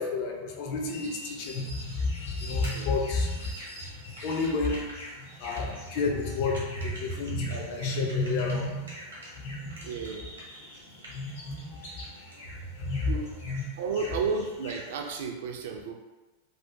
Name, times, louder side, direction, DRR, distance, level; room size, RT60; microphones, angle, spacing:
voice 1, 0.0-3.5 3.9-9.0 9.4-9.9 10.8-13.1 13.5-13.6, left 3 dB, 45° left, 1 dB, 0.4 m, -31 dB
sound 1, 0.8-15.1, left 1 dB, 65° left, 1.2 m, -46 dB
sound 2, 2.6-9.3 9.7-11.3 11.6-12.4, right 1 dB, 80° right, 0.8 m, -47 dB
voice 2, 9.8-10.2 13.1-13.4 13.8-15.9, right 5 dB, 55° right, 2 dB, 0.3 m, -32 dB
2.6 x 2.0 x 2.6 m, 1.2 s
figure-of-eight pair, 90°, 0 cm